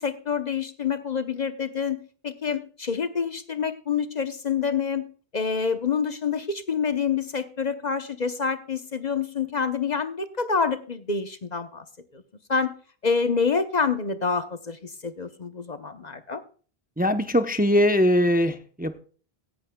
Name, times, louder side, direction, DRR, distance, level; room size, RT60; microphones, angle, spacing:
voice 1, 0.0-5.0 5.3-11.8 12.1-12.2 12.5-12.7 13.0-16.4, left 5 dB, 45° left, 10 dB, 1.0 m, -27 dB
voice 2, 17.0-19.0, equal, 10° right, 8 dB, 0.7 m, -21 dB
16.5 x 11.5 x 2.2 m, 0.39 s
omnidirectional pair, 1.0 m